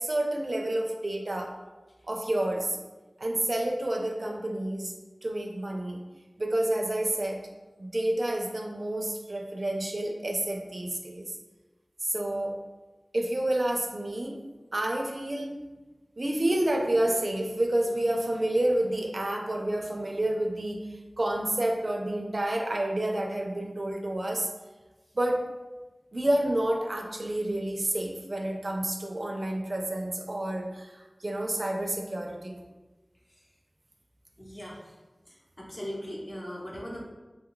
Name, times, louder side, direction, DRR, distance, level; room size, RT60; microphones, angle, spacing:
voice 1, 0.0-1.5 2.1-2.8 3.2-4.9 5.2-6.0 6.4-7.4 7.8-11.3 12.1-12.6 13.1-14.4 14.7-15.6 16.2-24.5 25.1-25.5 26.1-32.6, right 1 dB, 55° right, 2 dB, 0.4 m, -29 dB
voice 2, 34.4-34.9 35.3-37.0, equal, 45° left, -5 dB, 0.9 m, -39 dB
2.8 x 2.2 x 3.7 m, 1.2 s
wide cardioid pair, 55°, 0 cm